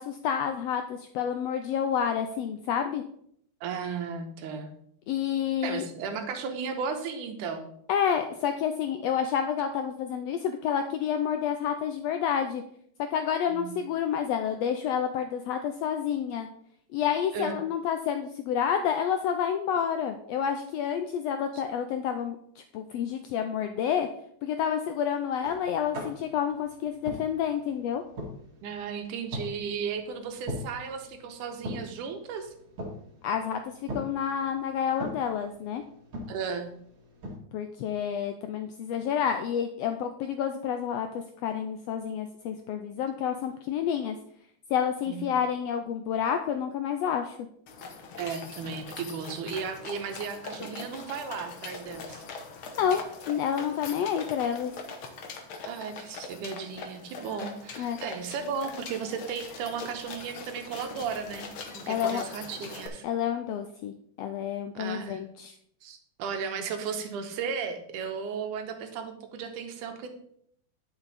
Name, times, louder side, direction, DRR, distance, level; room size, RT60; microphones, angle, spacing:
voice 1, 0.0-3.0 5.1-5.9 7.9-12.6 13.1-16.5 16.9-24.1 24.4-28.0 33.2-35.8 37.5-44.2 44.7-47.4 52.8-54.7 57.8-58.0 61.9-62.2 63.0-65.5, left 8 dB, 85° left, 7 dB, 1.4 m, -29 dB
voice 2, 3.6-4.7 5.6-7.7 13.5-13.7 17.3-17.6 21.5-21.6 28.6-32.5 36.3-36.7 45.1-45.3 48.2-52.2 55.6-63.0 64.7-65.2 65.8-70.1, right 6 dB, 85° right, 6 dB, 2.5 m, -35 dB
sound 1, 25.4-37.4, equal, 50° right, 2.5 m, -42 dB
sound 2, 47.7-62.9, left 4 dB, 60° left, 1.4 m, -42 dB
10.0 x 6.2 x 4.1 m, 0.68 s
omnidirectional pair, 3.5 m